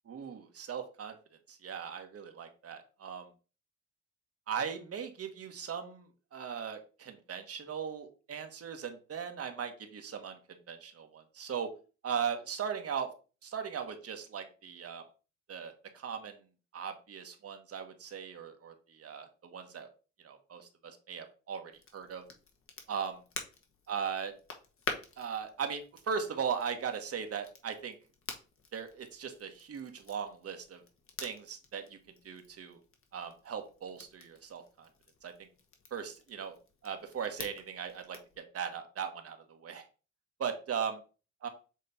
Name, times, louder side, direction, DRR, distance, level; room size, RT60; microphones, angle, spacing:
voice 1, 0.1-1.1 1.5-3.3 4.5-11.7 12.0-13.1 13.4-15.0 15.5-16.4 16.7-19.9 20.2-22.2 22.9-23.2 23.9-24.3 25.2-27.9 28.7-30.8 31.2-32.0 32.2-32.8 33.1-34.9 35.2-35.5 35.9-36.5 36.8-39.8 40.4-41.0 41.4-41.5, right 7 dB, 50° right, 6 dB, 1.3 m, -38 dB
Crackle, 21.7-38.4, left 4 dB, 45° left, 1.5 m, -48 dB
7.5 x 3.2 x 4.0 m, 0.34 s
cardioid pair, 90°, 30 cm